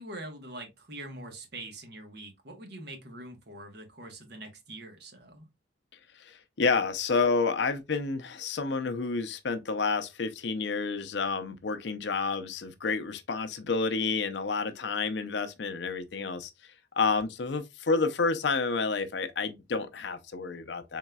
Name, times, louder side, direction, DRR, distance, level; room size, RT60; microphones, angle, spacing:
voice 1, 0.0-5.5, right 1 dB, 60° right, 1.2 m, -44 dB
voice 2, 6.1-21.0, left 4 dB, 65° left, 0.6 m, -30 dB
4.0 x 3.7 x 2.2 m
head